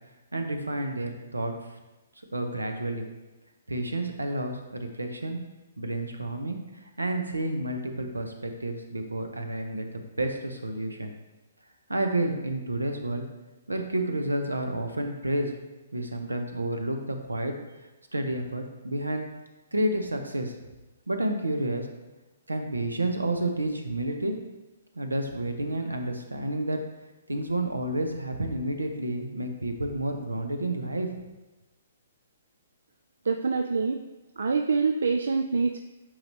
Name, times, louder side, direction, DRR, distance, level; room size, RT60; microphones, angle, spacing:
voice 1, 0.3-1.7 2.3-3.0 3.7-5.4 5.8-11.1 11.9-13.2 13.7-15.5 15.9-17.5 18.1-19.3 19.7-20.5 21.1-21.9 22.5-24.4 24.9-26.8 27.3-31.1, right 1 dB, 90° right, 5 dB, 0.8 m, -30 dB
voice 2, 33.3-34.0 34.4-35.8, right 4 dB, 70° right, 6 dB, 0.3 m, -25 dB
8.8 x 4.8 x 2.8 m, 1.1 s
figure-of-eight pair, 125°, 0 cm